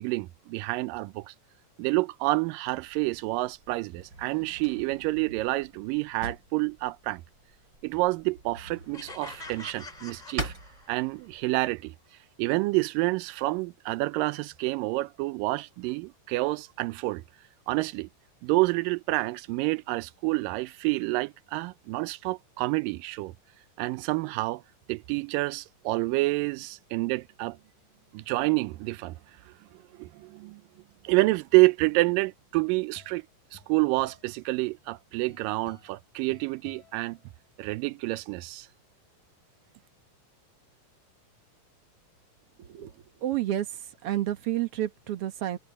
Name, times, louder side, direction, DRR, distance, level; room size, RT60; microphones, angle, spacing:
voice 1, 0.0-1.3 1.8-7.2 7.8-10.5 10.9-11.9 12.4-17.2 17.7-18.1 18.4-23.3 23.8-24.6 24.9-27.6 28.1-29.2 30.0-30.6 31.0-33.2 33.5-37.2 37.6-38.7, right 22 dB, 80° right, 2.2 m, -28 dB
Drawer open or close, 2.9-11.5, right 2 dB, 30° right, 7.4 m, -44 dB
sound 1, 8.9-11.3, left 2 dB, 15° left, 2.1 m, -45 dB
sound 2, 32.6-37.8, left 4 dB, 85° left, 8.9 m, -57 dB
voice 2, 42.6-42.9 43.2-45.6, right 13 dB, 65° right, 1.5 m, -30 dB
omnidirectional pair, 4.0 m